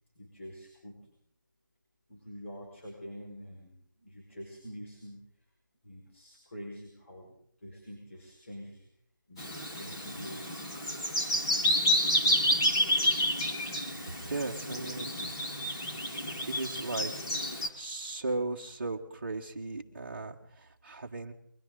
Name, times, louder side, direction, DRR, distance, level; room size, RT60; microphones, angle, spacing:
voice 1, 0.2-1.1 2.1-5.2 5.8-8.9 9.3-10.6, equal, 40° left, -2 dB, 5.2 m, -46 dB
Bird vocalization bird call bird song, 9.4-17.7, left 1 dB, 15° left, 1.8 m, -30 dB
voice 2, 14.3-15.1 16.5-17.1 17.8-20.4 20.8-21.3, right 3 dB, 30° right, -2 dB, 1.7 m, -36 dB
29.5 x 22.5 x 4.0 m, 0.63 s
figure-of-eight pair, 175°, 11 cm